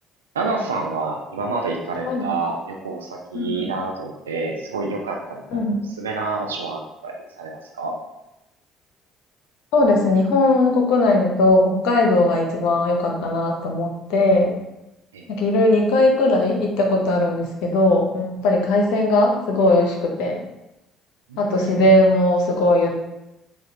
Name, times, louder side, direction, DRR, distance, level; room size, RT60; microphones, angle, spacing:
voice 1, 0.3-5.6 6.0-8.0 15.1-15.2 21.3-21.9, right 3 dB, 80° right, 1 dB, 0.4 m, -28 dB
voice 2, 3.3-3.6 5.5-5.7 9.7-14.5 15.3-20.4 21.4-22.9, left 2 dB, 65° left, 1 dB, 0.7 m, -18 dB
5.0 x 2.3 x 2.7 m, 0.91 s
figure-of-eight pair, 55°, 0 cm